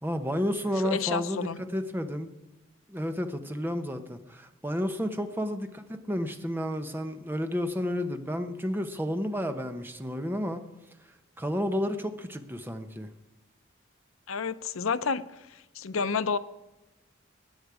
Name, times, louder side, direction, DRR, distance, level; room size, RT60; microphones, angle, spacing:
voice 1, 0.0-2.3 2.9-10.6 11.4-13.1, equal, 10° right, 7 dB, 0.9 m, -31 dB
voice 2, 0.8-1.6 14.3-16.4, left 5 dB, 85° left, 13 dB, 0.6 m, -30 dB
17.0 x 9.9 x 4.9 m, 1.0 s
head